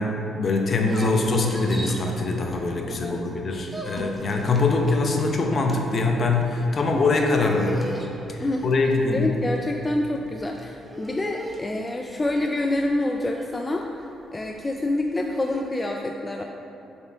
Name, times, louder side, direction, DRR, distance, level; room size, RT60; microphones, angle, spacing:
voice 1, 0.0-7.8 8.3-9.3, left 3 dB, 45° left, 2 dB, 0.7 m, -23 dB
sound 1, 0.7-3.0 3.3-15.6, equal, 10° right, 0.8 m, -38 dB
voice 2, 2.8-3.2 8.4-16.4, left 1 dB, 20° left, 2 dB, 0.3 m, -27 dB
6.9 x 4.4 x 3.5 m, 2.8 s
cardioid pair, 90°, 0 cm